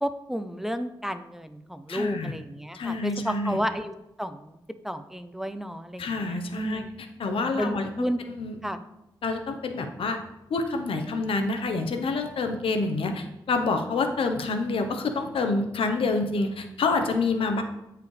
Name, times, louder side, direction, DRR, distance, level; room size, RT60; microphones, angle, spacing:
voice 1, 0.0-4.5 4.8-6.9 7.3-8.2 8.6-8.8, equal, 5° right, 10 dB, 0.6 m, -32 dB
voice 2, 1.9-2.4 2.7-3.6 6.0-6.9 7.2-7.9 8.3-8.6 9.2-10.2 10.5-17.6, left 3 dB, 85° left, 6 dB, 0.9 m, -27 dB
13.5 x 4.9 x 3.3 m, 0.92 s
cardioid pair, 65°, 9 cm